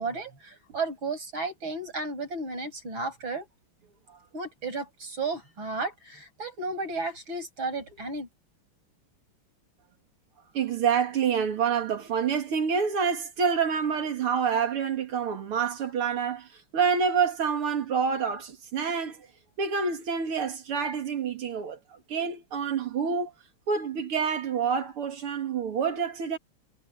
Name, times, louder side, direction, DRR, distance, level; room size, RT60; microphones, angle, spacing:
voice 1, 0.0-3.5 4.3-8.3, right 3 dB, 65° right, 7.6 m, -33 dB
voice 2, 10.5-19.3 19.6-23.3 23.7-26.4, right 6 dB, 90° right, 3.1 m, -27 dB
omnidirectional pair, 2.4 m